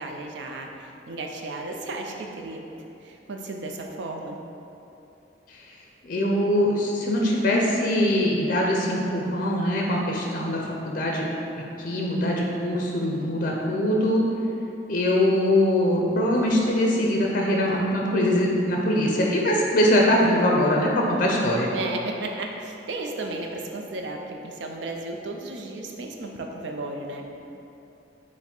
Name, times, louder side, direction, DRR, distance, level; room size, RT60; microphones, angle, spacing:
voice 1, 0.0-2.6 3.0-4.4 21.7-27.3, right 2 dB, 75° right, 2 dB, 0.5 m, -34 dB
voice 2, 6.0-10.6 10.8-11.2 11.8-14.3 14.9-21.7, left 1 dB, 50° left, -1 dB, 0.5 m, -22 dB
5.7 x 2.1 x 4.3 m, 2.9 s
head